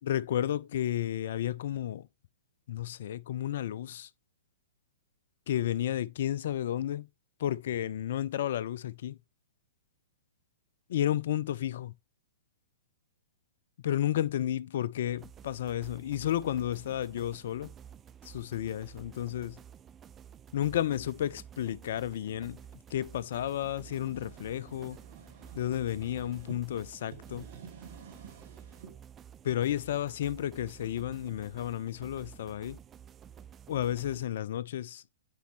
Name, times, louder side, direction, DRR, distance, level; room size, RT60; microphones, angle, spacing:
voice 1, 0.0-2.1 2.7-4.1 5.5-7.1 7.4-9.2 10.9-11.9 13.8-17.7 18.2-19.6 20.5-22.6 22.9-25.0 25.5-27.4 29.4-32.8 33.7-35.0, left 11 dB, 60° left, 0.4 m, -32 dB
sound 1, 15.1-34.3, right 8 dB, 20° right, 0.3 m, -51 dB
sound 2, 23.8-26.6 27.0-28.9, right 6 dB, 55° right, 1.6 m, -51 dB
8.2 x 4.2 x 2.9 m
figure-of-eight pair, 115°, 0 cm